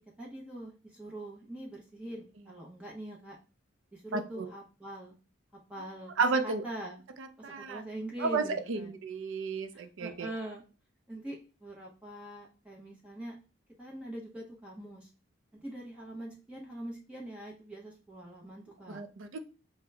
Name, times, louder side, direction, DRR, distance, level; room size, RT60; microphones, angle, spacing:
voice 1, 0.2-3.4 3.9-5.2 5.7-6.1 6.4-7.0 7.4-8.9 9.7-10.6 11.1-13.4 13.8-15.1 15.5-19.0, right 1 dB, 5° right, -3 dB, 0.7 m, -43 dB
voice 2, 4.1-4.5 6.2-6.6 7.2-7.8 8.2-10.3 18.9-19.4, right 4 dB, 90° right, 10 dB, 0.5 m, -32 dB
5.2 x 2.1 x 3.3 m, 0.34 s
head